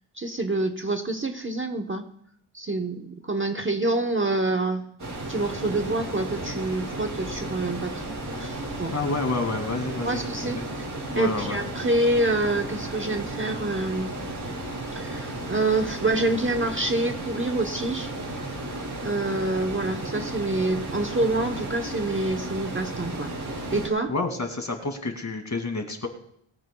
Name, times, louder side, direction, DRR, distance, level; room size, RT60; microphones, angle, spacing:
voice 1, 0.2-2.0 2.5-4.8 5.3-8.1 8.4-8.9 10.0-10.9 11.1-14.1 14.9-18.1 19.0-23.3 23.7-24.1, right 2 dB, 25° right, 4 dB, 1.0 m, -27 dB
sound 1, 5.0-23.9, right 1 dB, 40° right, 5.4 m, -34 dB
voice 2, 8.9-10.7 11.1-11.6 24.1-26.1, left 3 dB, 35° left, 4 dB, 2.3 m, -29 dB
22.0 x 15.0 x 2.3 m, 0.68 s
wide cardioid pair, 125°, 49 cm